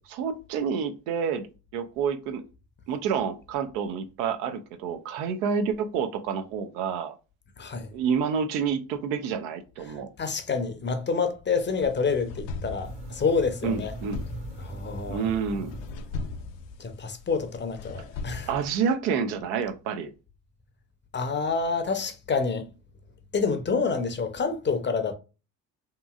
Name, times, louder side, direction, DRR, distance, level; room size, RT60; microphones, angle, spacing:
voice 1, 0.1-1.5 1.7-2.4 2.9-7.1 7.9-10.1 13.6-14.2 15.1-15.7 18.5-20.1, right 6 dB, 85° right, 0.6 m, -28 dB
voice 2, 7.6-7.9 9.9-13.9 14.6-15.3 16.8-18.5 21.1-22.7 23.3-25.2, left 5 dB, 25° left, 0.5 m, -28 dB
sound 1, 11.5-18.9, left 4 dB, 70° left, 0.5 m, -40 dB
sound 2, 12.8-16.6, right 1 dB, 15° right, 0.6 m, -41 dB
2.9 x 2.6 x 2.3 m
hypercardioid pair, 65°, 45 cm